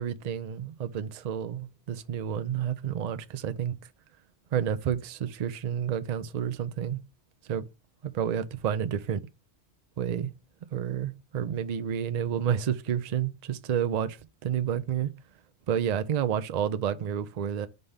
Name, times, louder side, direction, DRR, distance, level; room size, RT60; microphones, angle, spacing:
voice 1, 0.0-3.7 4.5-7.0 7.4-7.6 8.0-9.2 10.0-10.3 10.7-15.1 15.7-17.7, right 9 dB, 55° right, 0.5 m, -30 dB
5.3 x 3.4 x 5.4 m
omnidirectional pair, 1.2 m